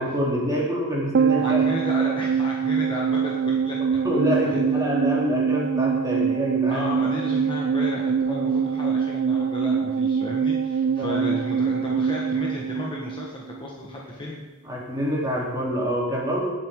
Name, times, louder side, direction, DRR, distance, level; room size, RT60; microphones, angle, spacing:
voice 1, 0.0-1.7 2.0-2.1 4.0-7.0 8.3-8.5 10.8-11.4 14.6-16.5, equal, 15° right, -5 dB, 3.4 m, -26 dB
sound 1, 1.1-13.7 13.9-14.0, right 6 dB, 55° right, 0.3 m, -24 dB
voice 2, 1.4-4.0 4.4-4.8 6.7-14.4, left 2 dB, 25° left, -3 dB, 1.5 m, -34 dB
19.0 x 7.9 x 3.8 m, 1.2 s
head